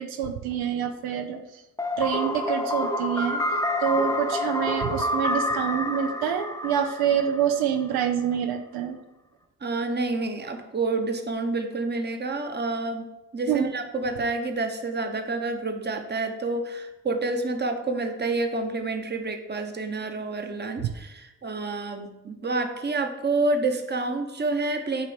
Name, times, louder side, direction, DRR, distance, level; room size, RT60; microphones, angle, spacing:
voice 1, 0.0-1.6 2.0-9.0 13.5-13.7, right 8 dB, 80° right, 6 dB, 0.6 m, -26 dB
sound 1, 1.8-7.6, left 1 dB, 10° left, 0.7 m, -28 dB
voice 2, 9.6-13.1 13.3-25.1, right 3 dB, 30° right, 6 dB, 0.9 m, -28 dB
8.1 x 3.0 x 5.0 m, 0.96 s
supercardioid pair, 50°, 36 cm